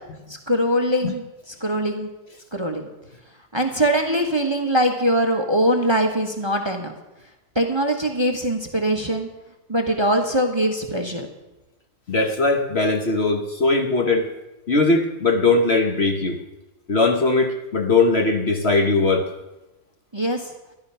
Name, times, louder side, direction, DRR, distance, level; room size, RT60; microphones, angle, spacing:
voice 1, 0.3-1.2 1.6-2.1 2.5-2.9 3.5-6.9 7.5-9.3 9.7-11.3 20.1-20.5, right 1 dB, 20° right, 3 dB, 1.1 m, -22 dB
voice 2, 12.1-14.3 14.7-16.4 16.9-19.2, left 3 dB, 45° left, 4 dB, 1.2 m, -20 dB
13.5 x 11.5 x 5.6 m, 0.99 s
omnidirectional pair, 1.6 m